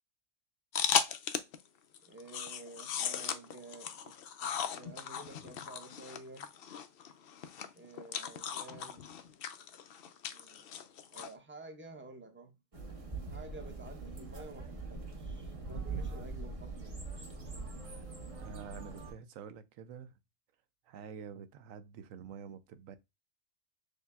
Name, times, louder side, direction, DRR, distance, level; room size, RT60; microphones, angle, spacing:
sound 1, 0.7-1.6 1.9-11.3, left 8 dB, 60° left, 0.6 m, -37 dB
voice 1, 2.1-4.1 4.4-6.5 7.8-9.1 10.3-10.8 11.1-12.6 13.3-17.4, right 3 dB, 10° right, 0.6 m, -51 dB
sound 2, 12.7-19.1, right 3 dB, 30° right, 0.9 m, -42 dB
voice 2, 18.4-20.1 20.9-23.0, right 7 dB, 80° right, 1.0 m, -48 dB
6.5 x 2.8 x 2.2 m
omnidirectional pair, 1.4 m